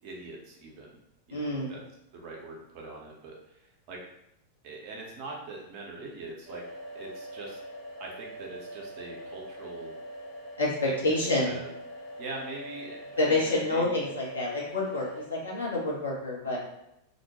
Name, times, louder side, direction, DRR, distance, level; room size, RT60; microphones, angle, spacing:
voice 1, 0.0-1.0 1.3-1.8 2.1-4.0 4.6-6.6 6.9-7.6 8.0-9.9 10.9-11.7 12.2-14.0, right 3 dB, 45° right, -1 dB, 0.7 m, -42 dB
voice 2, 1.3-1.7 10.6-11.6 13.2-16.6, left 2 dB, 75° left, -4 dB, 0.8 m, -28 dB
sound 1, 6.5-15.3, right 1 dB, 25° left, 0.7 m, -43 dB
2.5 x 2.1 x 2.9 m, 0.82 s
figure-of-eight pair, 90°, 0 cm